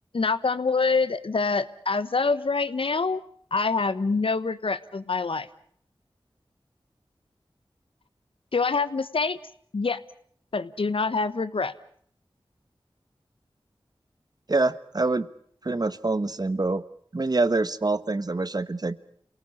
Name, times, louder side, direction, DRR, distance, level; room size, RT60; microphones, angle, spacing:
voice 1, 0.1-3.2 3.5-5.5 8.5-9.4 9.7-10.0 10.5-11.7, left 4 dB, 75° left, 14 dB, 1.1 m, -25 dB
voice 2, 14.5-15.3 15.6-16.8 17.1-19.0, right 3 dB, 45° right, 15 dB, 1.1 m, -25 dB
27.5 x 18.5 x 8.5 m, 0.63 s
wide cardioid pair, 50°, 9 cm